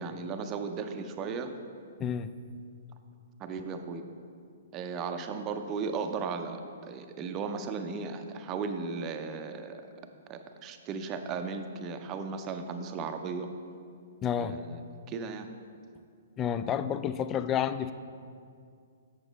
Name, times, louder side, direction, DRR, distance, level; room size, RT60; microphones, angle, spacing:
voice 1, 0.0-1.5 3.4-4.1 4.7-9.8 10.3-13.5 14.4-14.8 15.1-15.5, right 5 dB, 25° right, 7 dB, 0.6 m, -36 dB
voice 2, 2.0-2.3 14.2-14.5 16.4-17.9, left 9 dB, 20° left, 12 dB, 0.3 m, -30 dB
7.9 x 6.8 x 3.9 m, 2.3 s
figure-of-eight pair, 120°, 0 cm